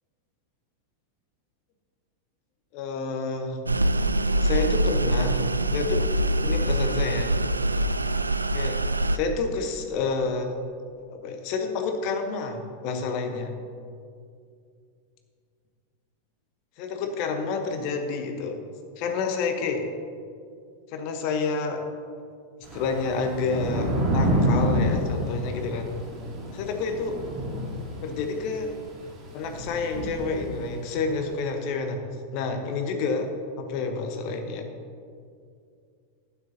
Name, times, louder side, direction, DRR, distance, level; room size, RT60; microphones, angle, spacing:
voice 1, 2.7-3.6 4.4-6.1 6.4-7.4 8.5-8.8 9.1-10.6 11.1-13.5 16.8-18.6 19.0-19.9 20.9-21.8 22.7-26.0 26.6-27.2 28.0-28.7 29.3-32.0 32.3-33.3 33.6-34.7, left 4 dB, 45° left, 5 dB, 1.0 m, -29 dB
sound 1, 3.7-9.2, right 1 dB, 80° right, 0.3 m, -24 dB
Thunder / Rain, 22.6-31.0, equal, 30° right, 1.8 m, -28 dB
11.5 x 9.5 x 2.8 m, 2.3 s
figure-of-eight pair, 90°, 0 cm